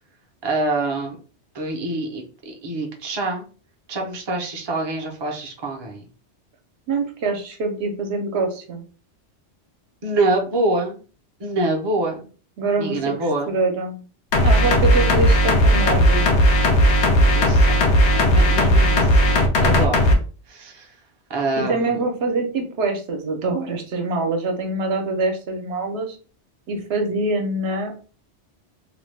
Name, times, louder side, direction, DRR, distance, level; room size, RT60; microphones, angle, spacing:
voice 1, 0.4-1.2 1.5-3.4 3.9-6.0 10.0-11.0 11.4-12.3 12.8-13.5 17.1-20.1 20.5-20.9 21.3-22.0, right 2 dB, 30° right, 1 dB, 0.5 m, -26 dB
voice 2, 6.9-8.8 12.6-13.0 13.5-14.0 14.4-16.3 21.6-26.2 26.7-28.1, right 3 dB, 65° right, 3 dB, 0.9 m, -24 dB
sound 1, 14.3-20.1, equal, 75° left, 0.9 m, -16 dB
2.8 x 2.1 x 3.2 m, 0.38 s
omnidirectional pair, 1.2 m